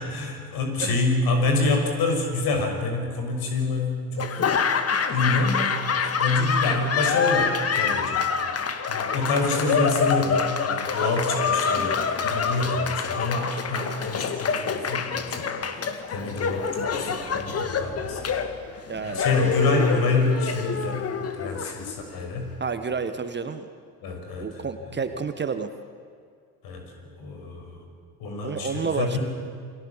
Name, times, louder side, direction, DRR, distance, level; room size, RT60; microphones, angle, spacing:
voice 1, 0.0-4.7 5.1-8.2 8.9-15.5 16.1-18.3 19.0-22.5 24.0-24.5 26.6-26.8 27.2-27.9 28.2-29.2, left 3 dB, 50° left, 4 dB, 6.3 m, -27 dB
Laughter / Applause, 4.2-22.3, left 6 dB, 30° left, 2.1 m, -26 dB
voice 2, 18.9-19.2 22.6-23.7 24.4-25.7 28.4-29.2, right 5 dB, 25° right, 9 dB, 1.5 m, -30 dB
29.0 x 22.0 x 7.5 m, 2.1 s
figure-of-eight pair, 65°, 45 cm